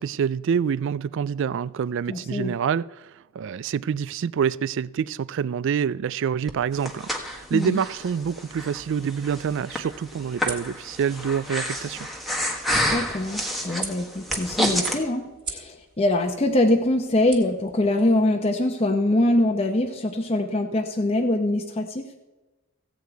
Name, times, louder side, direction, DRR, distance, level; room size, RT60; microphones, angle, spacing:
voice 1, 0.0-3.1 3.4-12.1, right 7 dB, 60° right, 0.3 m, -26 dB
voice 2, 2.1-2.5 7.5-7.8 12.9-22.0, left 1 dB, 30° left, 0.8 m, -23 dB
Breathing, 6.5-15.0, left 1 dB, ahead, 1.3 m, -29 dB
sound 1, 8.2-18.1, right 5 dB, 25° right, 1.9 m, -42 dB
15.5 x 8.3 x 4.6 m
head